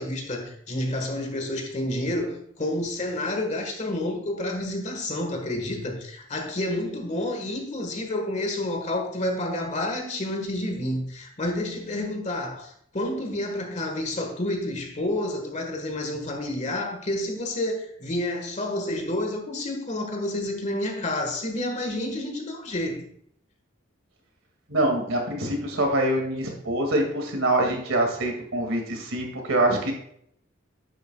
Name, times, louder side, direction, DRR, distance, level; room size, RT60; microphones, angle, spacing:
voice 1, 0.0-23.1, left 1 dB, 35° left, 1.5 m, -29 dB
voice 2, 24.7-29.9, right 1 dB, 90° right, 2.2 m, -25 dB
10.5 x 8.4 x 2.3 m
head